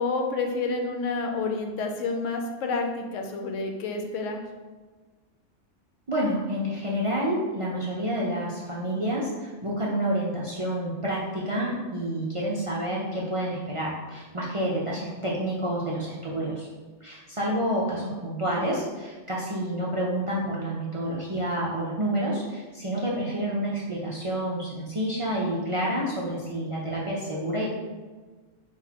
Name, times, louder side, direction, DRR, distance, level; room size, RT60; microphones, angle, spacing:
voice 1, 0.0-4.5, left 3 dB, 75° left, 3 dB, 0.9 m, -29 dB
voice 2, 6.1-16.7 17.0-27.7, right 1 dB, 50° right, -5 dB, 0.4 m, -29 dB
5.9 x 2.5 x 2.8 m, 1.3 s
omnidirectional pair, 1.3 m